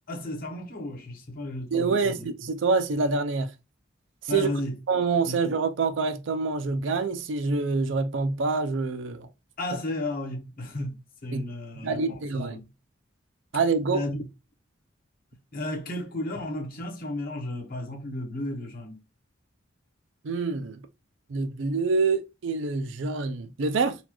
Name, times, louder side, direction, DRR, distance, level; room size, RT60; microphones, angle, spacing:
voice 1, 0.1-2.3 4.3-4.8 5.2-5.4 9.6-12.7 13.9-14.2 15.5-19.0, left 1 dB, 50° left, 1.0 m, -34 dB
voice 2, 1.7-3.5 4.3-4.5 4.9-9.3 11.3-11.4 11.8-12.6 13.5-14.0 20.2-20.8 21.3-24.0, right 4 dB, 70° right, 0.5 m, -26 dB
4.0 x 2.4 x 2.9 m
head